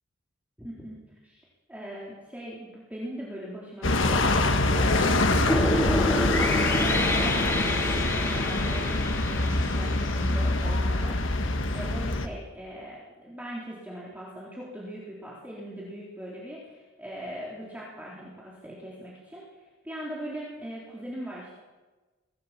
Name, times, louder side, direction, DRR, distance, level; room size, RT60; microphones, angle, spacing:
voice 1, 0.6-19.4 19.8-21.5, equal, 10° right, -6 dB, 3.8 m, -40 dB
sound 1, 3.8-12.3, left 2 dB, 65° left, 1.7 m, -25 dB
sound 2, 5.5-10.7, left 1 dB, 15° left, 1.8 m, -28 dB
23.0 x 15.5 x 7.5 m, 1.2 s
head